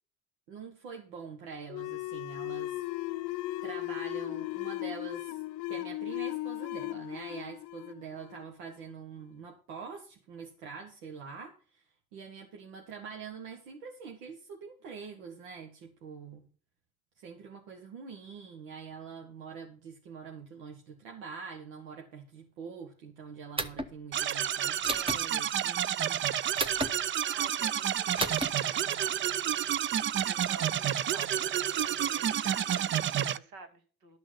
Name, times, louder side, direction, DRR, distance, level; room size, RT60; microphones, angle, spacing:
voice 1, 0.5-2.8 3.2-3.4 3.6-5.4 5.7-11.8 12.1-16.5 17.2-26.2, right 5 dB, 70° right, 2 dB, 1.7 m, -45 dB
sound 1, 1.7-8.9, left 18 dB, 50° left, 0.5 m, -37 dB
sound 2, 23.6-23.9 24.8-25.2 26.6-26.9 28.2-28.5, right 2 dB, 15° right, 1.2 m, -32 dB
sound 3, 24.1-33.4, right 10 dB, 30° right, 0.5 m, -30 dB
voice 2, 27.2-34.2, right 2 dB, 55° right, 6 dB, 2.5 m, -50 dB
12.5 x 6.2 x 6.2 m, 0.40 s
hypercardioid pair, 65°, 42 cm